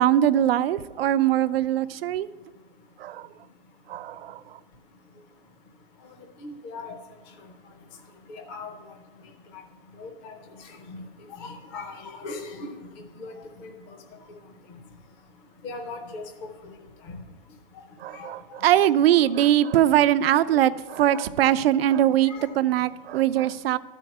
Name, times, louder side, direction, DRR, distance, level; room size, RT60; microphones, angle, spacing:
voice 1, 0.0-2.3 3.0-3.3 3.9-4.4 18.0-23.8, right 12 dB, 90° right, 13 dB, 0.5 m, -21 dB
voice 2, 6.4-6.9 8.3-8.7 10.0-10.3 10.9-11.0 11.4-12.7 13.2-13.3 13.6-14.0 15.6-16.2 17.1-17.2 18.1-18.3 18.7-18.9 22.2-22.5, left 3 dB, 25° left, 4 dB, 0.6 m, -38 dB
12.0 x 4.5 x 7.8 m, 1.3 s
supercardioid pair, 170°, 29 cm